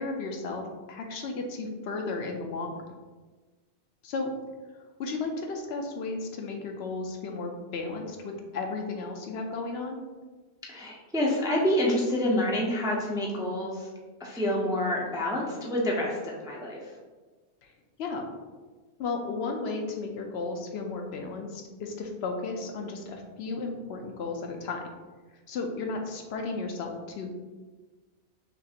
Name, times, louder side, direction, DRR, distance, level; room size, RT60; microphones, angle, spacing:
voice 1, 0.0-3.0 4.0-4.3 5.0-10.0 17.6-17.7 18.0-18.3 19.0-24.8 25.5-27.3, left 3 dB, 75° left, 3 dB, 0.8 m, -34 dB
voice 2, 10.7-13.9 14.2-16.8, left 1 dB, 5° right, -2 dB, 0.4 m, -27 dB
5.8 x 2.4 x 2.8 m, 1.3 s
omnidirectional pair, 1.1 m